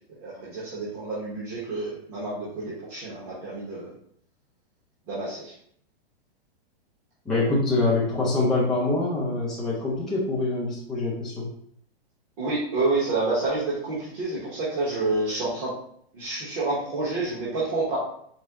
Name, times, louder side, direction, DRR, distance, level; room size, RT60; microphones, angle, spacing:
voice 1, 0.1-3.9 5.1-5.5 12.4-15.7 16.1-18.0, right 3 dB, 35° right, -8 dB, 1.0 m, -28 dB
voice 2, 7.2-11.5, left 2 dB, ahead, -9 dB, 0.3 m, -25 dB
4.3 x 2.0 x 3.5 m, 0.66 s
hypercardioid pair, 165°, 32 cm